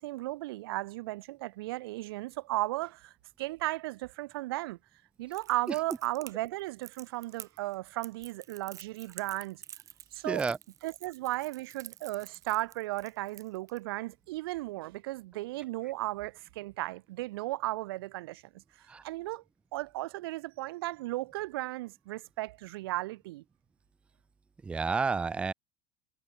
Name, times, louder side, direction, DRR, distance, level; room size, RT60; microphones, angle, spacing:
voice 1, 0.0-4.8 5.2-9.6 10.1-10.4 10.8-18.4 19.0-19.4 19.7-23.4, right 19 dB, 90° right, 1.4 m, -35 dB
Crackle, 5.3-13.8, right 11 dB, 25° right, 2.1 m, -49 dB
voice 2, 10.2-10.6 18.9-19.0 24.6-25.5, right 4 dB, 10° right, 0.6 m, -30 dB
supercardioid pair, 170°, 12 cm